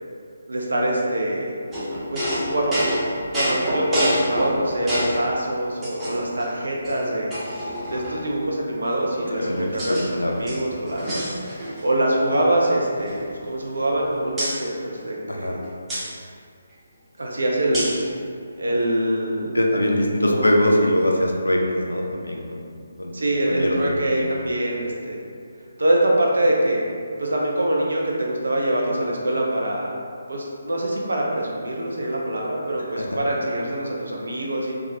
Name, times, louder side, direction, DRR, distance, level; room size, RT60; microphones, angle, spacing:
voice 1, 0.5-1.5 2.1-2.8 3.3-7.3 7.9-10.0 10.4-11.2 11.8-15.6 17.2-17.9 18.6-19.6 20.2-20.5 23.1-25.2 25.8-26.8 27.2-30.0 30.3-34.7, right 1 dB, 70° right, -2 dB, 0.4 m, -24 dB
sound 1, 1.7-5.3 5.8-6.4 6.8-6.9 7.3-8.4 9.1-10.1 10.4-11.9 12.2-12.4 12.7-14.0 14.4-14.6 15.9-16.1 17.7-18.1, equal, 10° right, 0.5 m, -27 dB
voice 2, 9.4-10.5 15.3-15.6 19.5-22.7 23.0-23.1 23.5-24.3 33.0-33.2, left 1 dB, 85° left, -1 dB, 0.4 m, -22 dB
2.2 x 2.1 x 2.8 m, 2.3 s
figure-of-eight pair, 145°, 0 cm